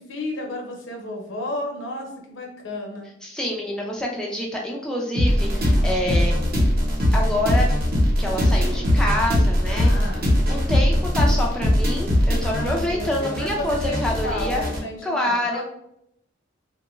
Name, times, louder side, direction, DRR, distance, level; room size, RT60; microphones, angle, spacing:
voice 1, 0.0-3.1 9.7-10.3 12.4-15.6, left 1 dB, 70° left, 1 dB, 0.7 m, -32 dB
voice 2, 3.2-6.4 7.1-7.7 8.2-9.9 10.5-14.6 15.0-15.6, left 1 dB, 5° left, -2 dB, 0.3 m, -26 dB
sound 1, 5.1-14.8, left 1 dB, 50° right, 0.8 m, -21 dB
3.0 x 2.2 x 3.0 m, 0.76 s
head